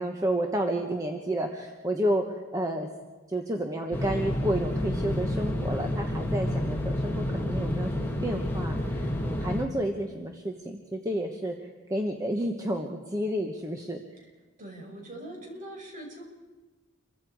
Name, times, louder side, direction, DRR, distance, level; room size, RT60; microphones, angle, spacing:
voice 1, 0.0-2.9 3.3-14.0, right 1 dB, 15° right, 3 dB, 1.1 m, -31 dB
sound 1, 3.9-9.6, left 1 dB, 10° left, 2.2 m, -29 dB
voice 2, 14.6-16.2, right 1 dB, 40° right, 0 dB, 5.8 m, -42 dB
28.5 x 23.5 x 4.9 m, 1.3 s
head